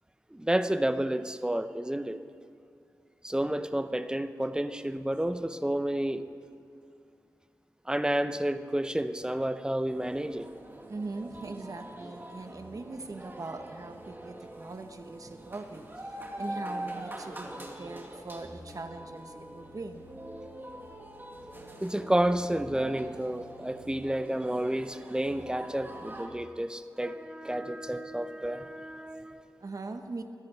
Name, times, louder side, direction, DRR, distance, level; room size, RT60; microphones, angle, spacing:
voice 1, 0.3-2.2 3.2-6.3 7.9-10.5 21.8-29.4, right 1 dB, 10° right, 0.7 m, -30 dB
sound 1, 9.9-26.3, right 1 dB, 30° right, 2.0 m, -44 dB
voice 2, 10.9-20.1 29.6-30.2, right 3 dB, 50° right, 1.0 m, -41 dB
27.0 x 10.5 x 3.4 m
cardioid pair, 50°, 7 cm